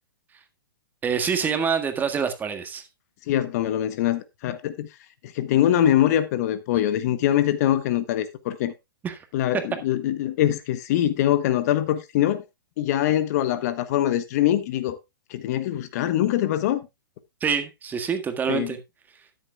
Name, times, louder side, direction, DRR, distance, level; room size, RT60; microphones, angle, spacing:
voice 1, 1.0-2.9 9.0-9.2 17.4-18.8, right 6 dB, 15° right, 1.7 m, -26 dB
voice 2, 3.3-4.9 5.2-8.7 9.3-12.4 12.8-15.0 15.3-16.9 18.5-18.8, left 12 dB, 45° left, 1.2 m, -23 dB
13.0 x 10.0 x 2.3 m
hypercardioid pair, 125°, 12 cm